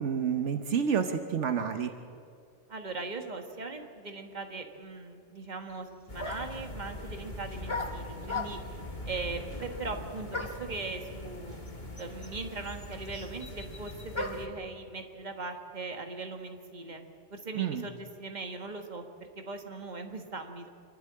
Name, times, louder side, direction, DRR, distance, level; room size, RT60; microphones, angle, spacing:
voice 1, 0.0-1.9 17.5-17.9, right 7 dB, 75° right, 7 dB, 1.2 m, -29 dB
voice 2, 2.7-8.6 9.0-11.6 12.0-17.0 17.3-20.7, right 3 dB, 40° right, 4 dB, 1.7 m, -40 dB
sound 1, 5.7-5.8 6.2-6.7 7.7-8.8 10.3-10.7 11.7-11.8 12.0-14.6, left 2 dB, 25° left, 1.5 m, -37 dB
sound 2, 6.1-14.5, left 1 dB, 40° left, 2.2 m, -42 dB
26.5 x 11.5 x 8.7 m, 2.4 s
omnidirectional pair, 1.2 m